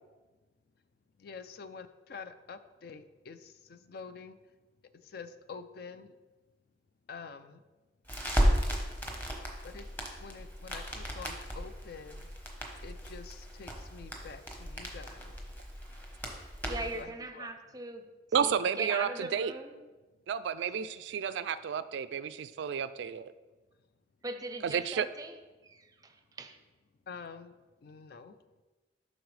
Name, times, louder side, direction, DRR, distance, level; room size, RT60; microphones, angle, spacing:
voice 1, 1.2-4.4 5.0-6.1 7.1-7.6 9.6-9.9 10.2-12.3 12.8-15.3 16.8-17.5 27.1-27.5 27.8-28.4, left 5 dB, 55° left, 11 dB, 0.4 m, -47 dB
Crackle, 8.1-17.0, equal, 10° left, 1.0 m, -34 dB
voice 2, 16.7-18.0 18.4-19.7 24.2-25.4 25.6-26.6, right 2 dB, 20° right, 7 dB, 0.5 m, -40 dB
voice 3, 18.3-19.5 20.3-23.3 24.6-25.1, right 7 dB, 70° right, 14 dB, 0.3 m, -31 dB
12.0 x 4.0 x 3.2 m, 1.2 s
head